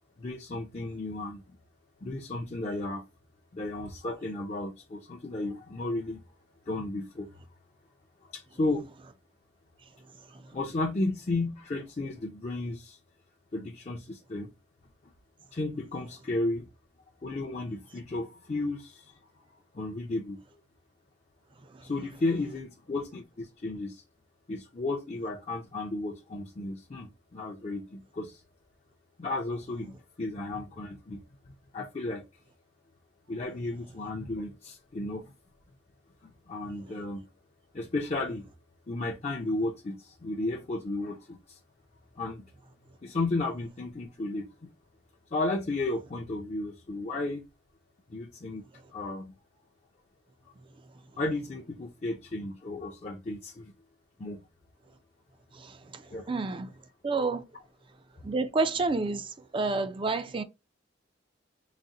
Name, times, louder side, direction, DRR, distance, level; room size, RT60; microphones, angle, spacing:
voice 1, 0.2-1.4 2.0-3.0 3.5-6.2 6.7-7.3 8.2-8.9 10.5-13.0 13.5-14.5 15.5-16.7 17.2-19.2 19.7-20.6 21.8-24.0 24.5-28.4 29.2-32.3 33.3-35.3 36.2-37.2 37.7-38.5 38.9-41.6 42.1-42.5 43.0-44.7 45.3-47.4 48.1-48.6 48.9-49.3 51.2-53.7 54.2-54.4 56.1-56.3, left 2 dB, 35° left, 0.5 m, -34 dB
voice 2, 55.5-56.0 56.3-56.7 57.0-57.4 58.2-60.4, right 3 dB, 30° right, 0.4 m, -29 dB
4.1 x 2.1 x 3.6 m
head